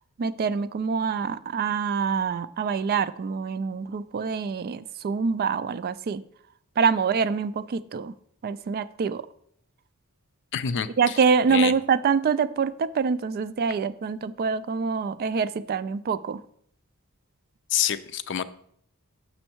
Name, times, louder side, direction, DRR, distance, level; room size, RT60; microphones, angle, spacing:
voice 1, 0.2-6.2 6.8-8.1 8.4-9.3 11.0-16.4, right 5 dB, 45° right, 15 dB, 0.3 m, -25 dB
voice 2, 10.5-11.2 11.5-11.7 17.7-18.4, left 9 dB, 55° left, 13 dB, 0.4 m, -27 dB
6.3 x 6.3 x 4.5 m, 0.66 s
head